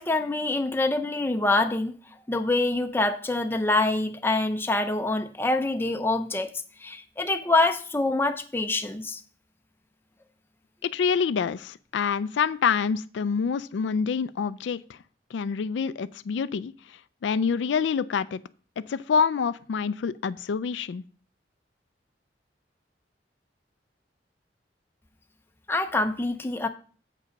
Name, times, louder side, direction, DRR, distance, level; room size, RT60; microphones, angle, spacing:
voice 1, 0.0-1.9 2.3-6.5 6.8-9.2 25.7-26.7, left 2 dB, 15° left, 6 dB, 0.5 m, -25 dB
voice 2, 10.8-15.0 15.3-16.7 17.2-18.4 18.8-21.0, left 6 dB, 85° left, 15 dB, 0.4 m, -26 dB
7.6 x 5.3 x 5.1 m, 0.42 s
head